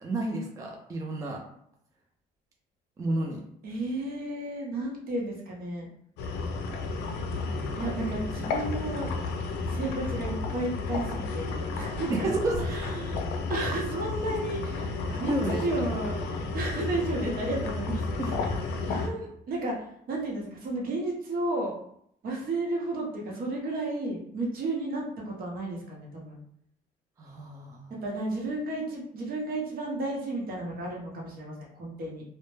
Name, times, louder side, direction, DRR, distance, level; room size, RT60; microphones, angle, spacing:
voice 1, 0.0-1.4 3.0-3.4 7.5-7.8 12.1-12.8 15.1-15.6 18.2-18.3 27.2-27.9, right 2 dB, 20° right, 0 dB, 0.4 m, -31 dB
voice 2, 3.6-5.9 7.7-9.1 9.6-12.3 12.6-13.2 13.5-16.1 16.5-18.5 18.9-21.7 22.2-26.4 28.0-32.2, right 2 dB, 60° right, -2 dB, 0.9 m, -33 dB
sound 1, 6.2-19.1, left 3 dB, 80° left, 0.4 m, -32 dB
2.1 x 2.0 x 3.0 m, 0.70 s
cardioid pair, 110°, 17 cm